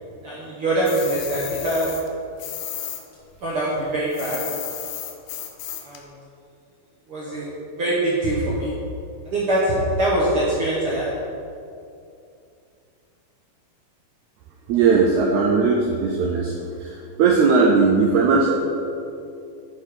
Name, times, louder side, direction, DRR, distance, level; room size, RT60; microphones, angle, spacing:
voice 1, 0.0-1.9 3.4-4.4 5.8-6.1 7.1-8.7 9.2-11.1, right 1 dB, 70° right, -7 dB, 1.3 m, -23 dB
sound 1, 0.8-3.0 3.3-6.0, left 10 dB, 80° left, 2.2 m, -33 dB
voice 2, 14.7-16.5 16.8-18.6, right 4 dB, 85° right, 0 dB, 1.6 m, -18 dB
9.8 x 4.6 x 5.0 m, 2.5 s
omnidirectional pair, 4.0 m